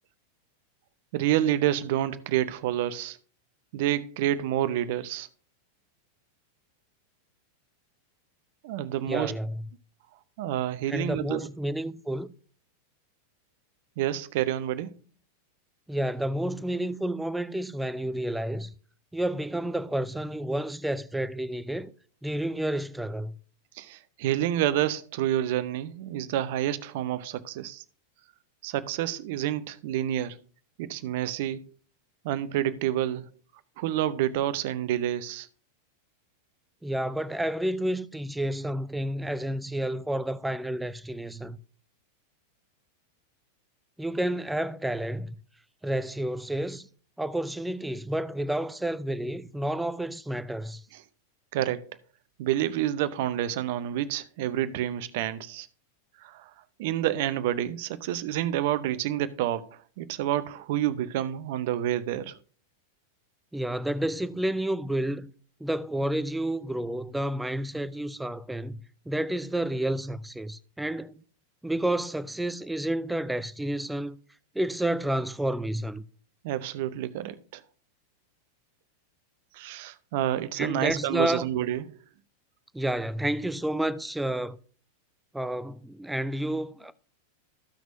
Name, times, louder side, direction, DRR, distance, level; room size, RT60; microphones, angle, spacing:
voice 1, 1.1-3.2 3.7-5.3 8.6-9.3 10.4-11.4 14.0-15.0 23.8-27.8 28.6-30.4 30.8-31.7 32.2-33.3 33.8-35.5 51.5-51.8 52.4-55.7 56.2-56.5 56.8-62.4 76.4-77.6 79.5-81.9, right 12 dB, 50° right, 0.7 m, -28 dB
voice 2, 9.1-9.7 10.9-12.3 15.9-18.7 19.1-21.9 22.2-23.4 36.8-41.6 44.0-45.3 45.8-46.9 47.2-50.8 63.5-65.3 65.6-71.2 71.6-74.2 74.5-76.0 80.6-81.4 82.7-84.6 85.3-86.9, right 1 dB, 5° right, 0.5 m, -30 dB
14.5 x 6.1 x 2.6 m
figure-of-eight pair, 90°, 0 cm